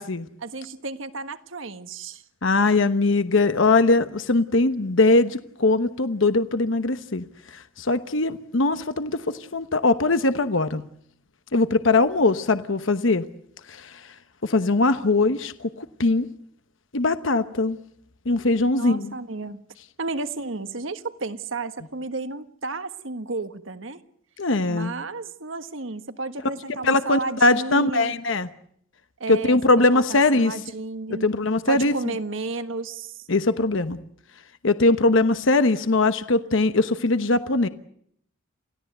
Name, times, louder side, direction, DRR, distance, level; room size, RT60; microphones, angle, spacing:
voice 1, 0.4-2.2 18.8-19.6 20.0-24.0 24.7-28.2 29.2-31.3 31.6-33.2, right 3 dB, 65° right, 10 dB, 1.5 m, -32 dB
voice 2, 2.4-7.2 7.5-10.8 11.5-13.2 13.7-13.9 14.4-16.3 16.9-17.8 18.3-19.1 24.4-24.9 26.8-28.5 29.3-30.5 31.2-31.9 33.3-34.0 34.6-37.7, left 2 dB, 65° left, 11 dB, 1.0 m, -21 dB
28.5 x 16.5 x 8.1 m, 0.68 s
head